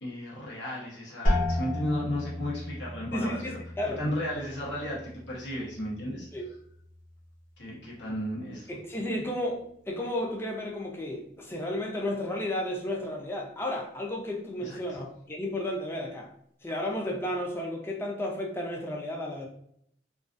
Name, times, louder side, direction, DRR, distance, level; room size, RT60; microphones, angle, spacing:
voice 1, 0.0-3.6 4.0-6.3 7.6-8.7 14.6-14.8, left 1 dB, 90° left, -5 dB, 0.8 m, -34 dB
sound 1, 1.2-6.9 7.2-7.9 8.4-8.9, left 1 dB, 50° left, 1.0 m, -34 dB
voice 2, 3.1-4.0 6.3-6.5 8.7-16.3 16.6-19.5, left 1 dB, 15° left, 0 dB, 0.4 m, -33 dB
2.3 x 2.3 x 2.4 m, 0.70 s
head